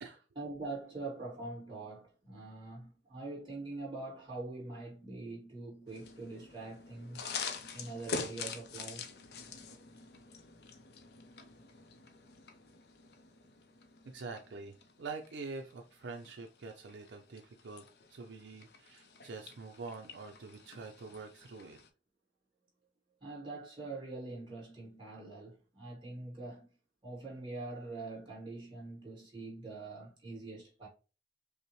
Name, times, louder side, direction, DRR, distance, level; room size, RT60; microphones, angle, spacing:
voice 1, 0.4-9.1 23.2-26.7 27.0-30.9, right 3 dB, 25° right, 2.0 m, -44 dB
sound 1, 5.9-21.9, left 5 dB, 60° left, 0.5 m, -46 dB
voice 2, 14.1-17.8 18.1-21.8, right 4 dB, 80° right, 0.5 m, -45 dB
5.4 x 2.1 x 3.0 m
head